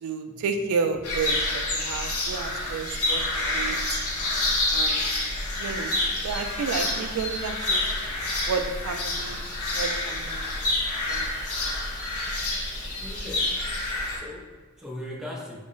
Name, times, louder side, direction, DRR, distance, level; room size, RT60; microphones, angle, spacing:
voice 1, 0.0-4.0 4.7-5.2 5.6-5.9 6.2-7.9 8.5-9.4 9.7-10.5 11.1-11.3, right 5 dB, 80° right, 6 dB, 0.3 m, -31 dB
sound 1, 1.0-14.2, left 2 dB, 85° left, 0.7 m, -28 dB
voice 2, 12.9-13.6 14.1-15.6, left 1 dB, 5° right, -3 dB, 0.5 m, -39 dB
3.9 x 2.0 x 3.7 m, 1.4 s
head